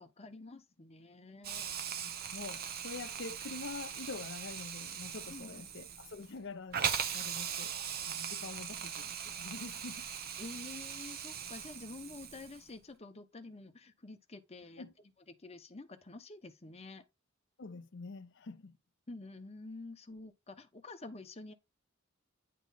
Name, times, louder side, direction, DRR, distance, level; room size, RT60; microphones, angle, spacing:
voice 1, 0.0-1.7 5.3-5.7 10.4-14.8 15.3-17.0 19.1-21.5, left 2 dB, 30° left, 0.9 m, -49 dB
Hiss, 1.4-12.7, right 7 dB, 50° right, 0.7 m, -40 dB
voice 2, 2.3-7.7 8.1-10.1 14.8-14.9 17.6-18.8, left 3 dB, 65° left, 0.7 m, -46 dB
9.3 x 3.2 x 4.0 m
head